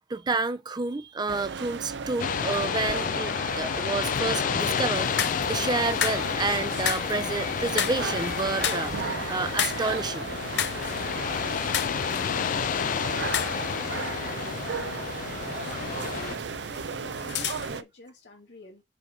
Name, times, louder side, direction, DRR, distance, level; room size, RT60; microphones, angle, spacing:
voice 1, 0.1-10.3, right 3 dB, 25° right, 0.5 m, -30 dB
sound 1, 1.3-17.8, right 6 dB, 85° right, 0.5 m, -36 dB
sound 2, 2.2-16.4, left 8 dB, 50° left, 0.3 m, -30 dB
sound 3, 5.0-17.8, left 8 dB, 70° left, 0.7 m, -35 dB
voice 2, 11.4-18.8, left 1 dB, 90° left, 3.0 m, -48 dB
7.4 x 3.8 x 5.0 m
head